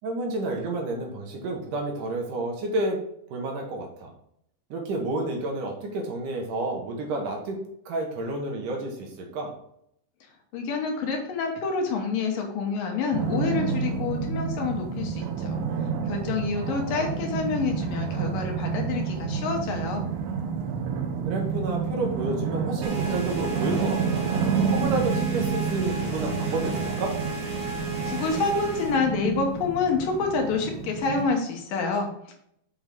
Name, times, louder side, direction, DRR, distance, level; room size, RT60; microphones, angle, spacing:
voice 1, 0.0-3.0 3.3-4.1 4.7-7.6 7.9-9.5 16.6-17.2 21.3-24.2 24.7-27.1, right 2 dB, 65° right, 1 dB, 2.6 m, -30 dB
voice 2, 10.5-15.6 16.1-20.1 28.0-32.3, left 4 dB, 70° left, 2 dB, 2.7 m, -28 dB
sound 1, 13.1-31.3, right 6 dB, 85° right, 2.7 m, -29 dB
sound 2, 22.8-29.0, right 2 dB, 40° right, 3.8 m, -35 dB
6.3 x 6.1 x 3.5 m, 0.72 s
omnidirectional pair, 4.2 m